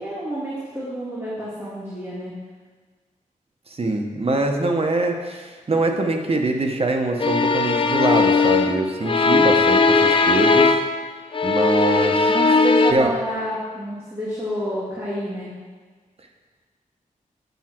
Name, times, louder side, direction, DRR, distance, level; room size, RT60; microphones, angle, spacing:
voice 1, 0.0-2.3 12.3-15.5, equal, 20° right, -9 dB, 2.2 m, -29 dB
voice 2, 3.7-10.7 11.4-12.3 12.9-13.1, right 2 dB, 45° right, 3 dB, 1.1 m, -23 dB
sound 1, 7.2-11.0 11.3-12.9, left 4 dB, 35° left, 0.5 m, -18 dB
8.2 x 7.3 x 4.5 m, 1.4 s
wide cardioid pair, 90°, 14 cm